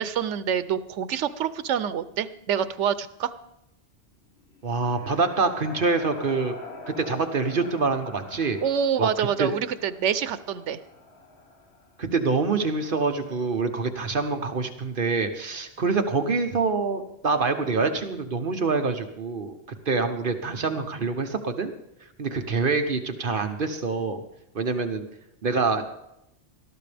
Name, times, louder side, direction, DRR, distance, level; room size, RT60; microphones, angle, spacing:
voice 1, 0.0-3.3 8.6-10.8, right 8 dB, 90° right, 14 dB, 1.0 m, -26 dB
sound 1, 4.4-12.2, left 3 dB, 65° left, 1.7 m, -45 dB
voice 2, 4.6-6.6 7.0-8.6 9.0-9.5 12.0-19.6 19.9-21.7 22.2-24.2 24.5-25.0 25.4-25.8, right 4 dB, 50° right, 7 dB, 1.1 m, -26 dB
19.5 x 13.0 x 3.4 m, 0.83 s
omnidirectional pair, 1.2 m